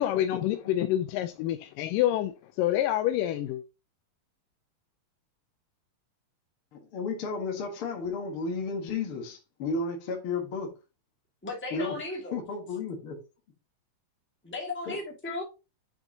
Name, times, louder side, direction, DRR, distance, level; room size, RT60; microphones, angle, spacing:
voice 1, 0.0-3.6, left 12 dB, 85° left, 2.3 m, -27 dB
voice 2, 6.7-10.7 11.7-12.0 12.3-13.2 14.9-15.0, left 4 dB, 50° left, 2.0 m, -33 dB
voice 3, 11.4-12.4 14.4-15.4, left 3 dB, 5° left, 1.3 m, -35 dB
9.8 x 5.3 x 2.9 m
omnidirectional pair, 4.0 m